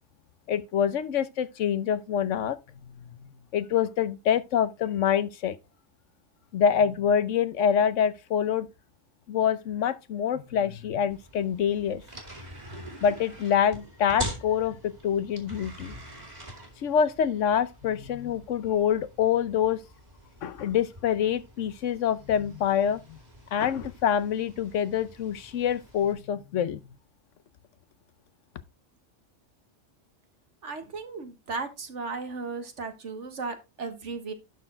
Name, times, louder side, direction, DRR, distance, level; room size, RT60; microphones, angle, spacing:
voice 1, 0.5-2.6 2.8-5.6 6.5-8.7 9.3-12.0 13.0-15.9 16.8-19.8 20.4-23.2 23.5-26.8, left 8 dB, 80° left, 1.1 m, -26 dB
sound 1, 11.1-26.1, right 1 dB, 35° right, 2.5 m, -44 dB
voice 2, 30.6-34.3, right 4 dB, 75° right, 1.7 m, -35 dB
11.5 x 4.5 x 4.4 m
omnidirectional pair, 1.3 m